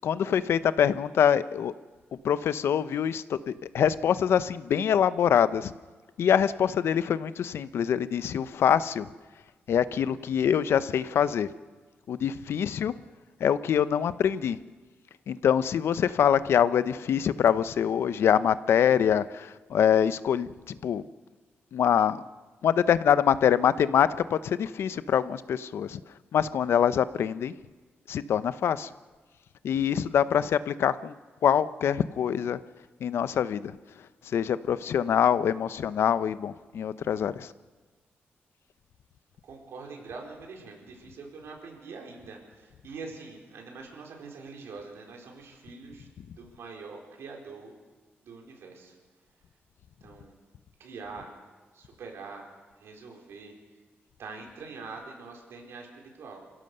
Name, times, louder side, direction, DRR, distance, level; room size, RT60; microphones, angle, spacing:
voice 1, 0.0-1.7 2.2-5.7 6.2-9.1 9.7-11.5 12.1-12.9 13.4-14.6 15.3-21.0 21.7-22.2 22.6-26.0 26.3-27.5 28.1-28.9 29.6-31.1 31.4-32.6 33.0-33.8 34.2-37.5, left 8 dB, 75° left, 15 dB, 0.7 m, -24 dB
voice 2, 39.4-46.1 46.4-47.7 48.2-49.0 50.0-50.4 50.8-51.4 51.7-52.5 52.8-53.5 54.2-56.4, right 4 dB, 85° right, 1 dB, 4.5 m, -44 dB
27.5 x 16.0 x 6.7 m, 1.3 s
wide cardioid pair, 140°, 4 cm